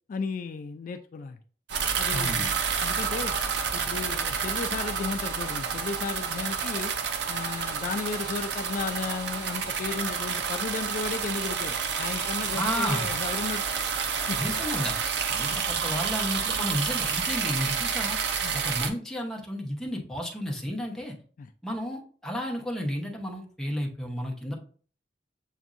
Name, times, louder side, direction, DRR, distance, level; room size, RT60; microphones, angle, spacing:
voice 1, 0.1-1.4 2.0-2.5 2.8-3.3 3.7-6.9 7.3-13.6 14.3-14.4 15.5-15.6 18.4-18.6 21.4-21.5, left 4 dB, 50° left, 7 dB, 0.3 m, -34 dB
sound 1, 1.7-18.9, right 6 dB, 70° right, 0.6 m, -29 dB
voice 2, 2.1-2.6 12.5-13.1 14.4-15.0 15.3-18.2 18.5-21.1 21.6-24.5, equal, 5° left, -1 dB, 0.8 m, -32 dB
7.1 x 2.6 x 2.5 m, 0.43 s
head